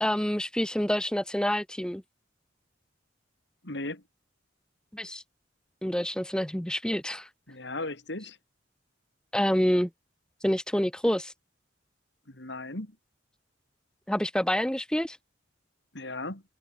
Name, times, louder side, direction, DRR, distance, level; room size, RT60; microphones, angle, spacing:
voice 1, 0.0-2.0 4.9-5.2 5.8-7.3 9.3-9.9 10.4-11.3 14.1-15.2, equal, 5° left, 0.9 m, -27 dB
voice 2, 3.6-4.0 7.5-8.4 12.3-13.0 15.9-16.4, left 2 dB, 65° left, 3.9 m, -36 dB
head